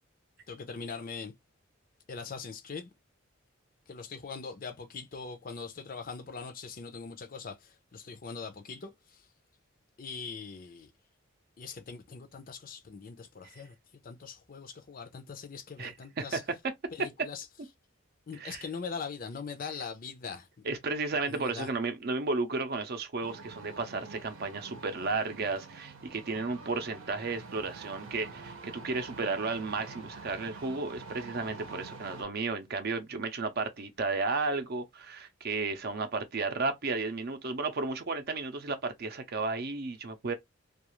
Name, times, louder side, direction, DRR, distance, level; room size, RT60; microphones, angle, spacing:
voice 1, 0.5-1.3 2.1-2.9 3.9-9.2 10.0-10.9 11.6-16.4 16.9-17.5 18.3-20.7 21.2-21.7, left 5 dB, 45° left, 0.5 m, -41 dB
voice 2, 15.8-16.4 18.4-18.6 20.6-40.3, right 3 dB, 55° right, 0.5 m, -33 dB
sound 1, 23.2-32.2, right 3 dB, 90° right, 0.7 m, -46 dB
2.4 x 2.3 x 3.0 m
head